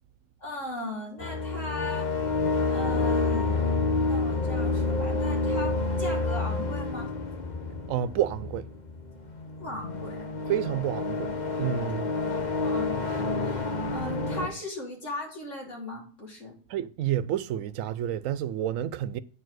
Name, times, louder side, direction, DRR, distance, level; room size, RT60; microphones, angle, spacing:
voice 1, 0.4-2.1 2.7-3.6 4.0-7.1 9.6-10.2 11.7-11.8 12.3-16.5, left 2 dB, 65° left, 3.5 m, -38 dB
sound 1, 1.2-14.5, left 3 dB, 35° left, 1.0 m, -29 dB
voice 2, 7.9-8.7 10.5-11.3 11.6-12.1 16.7-19.2, right 11 dB, 85° right, 1.0 m, -29 dB
8.6 x 4.7 x 6.2 m
omnidirectional pair, 1.3 m